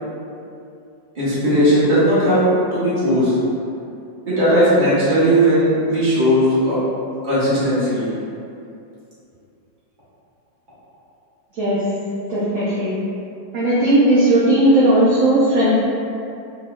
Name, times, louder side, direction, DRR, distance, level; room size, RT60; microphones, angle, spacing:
voice 1, 1.1-3.3 4.3-6.8 7.2-8.1, equal, 30° right, -11 dB, 1.2 m, -17 dB
voice 2, 12.3-12.9 13.5-15.7, right 1 dB, 60° right, -10 dB, 0.9 m, -16 dB
4.4 x 2.7 x 2.2 m, 2.6 s
omnidirectional pair, 2.0 m